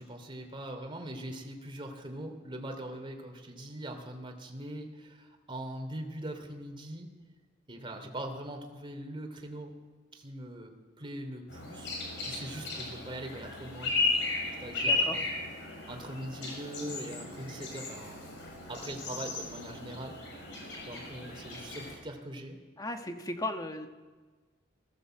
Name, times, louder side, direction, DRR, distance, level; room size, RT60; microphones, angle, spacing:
voice 1, 0.0-7.1 7.7-9.7 10.1-11.9 12.3-14.0 14.6-15.3 15.9-18.3 18.7-20.2 20.8-22.6, right 1 dB, 25° right, 3 dB, 3.0 m, -41 dB
sound 1, 11.5-21.9, left 3 dB, 70° left, 6.0 m, -35 dB
voice 2, 14.8-15.2 22.8-23.9, left 1 dB, 20° left, 5 dB, 1.5 m, -36 dB
20.0 x 16.5 x 7.9 m, 1.4 s
head